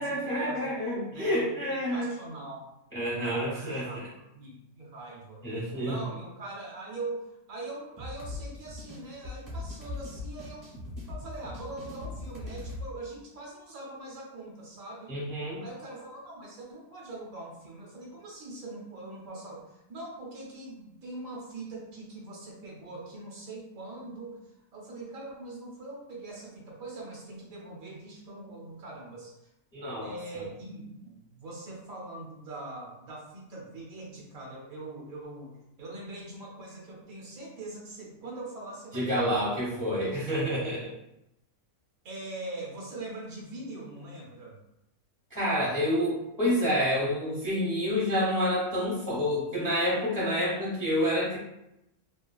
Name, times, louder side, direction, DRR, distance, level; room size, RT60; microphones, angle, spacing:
voice 1, 0.0-2.1 2.9-4.1 5.4-5.9 15.1-15.6 29.7-30.1 38.9-40.9 45.3-51.4, equal, 10° left, -6 dB, 0.6 m, -28 dB
voice 2, 1.1-2.7 3.2-4.0 4.3-5.4 5.8-10.7 11.1-15.1 15.6-24.4 24.7-29.5 30.0-39.6 42.0-44.6, right 2 dB, 70° right, -3 dB, 1.1 m, -42 dB
sound 1, 8.0-12.9, left 2 dB, 45° right, 0.8 m, -40 dB
2.9 x 2.3 x 2.2 m, 0.86 s
omnidirectional pair, 1.6 m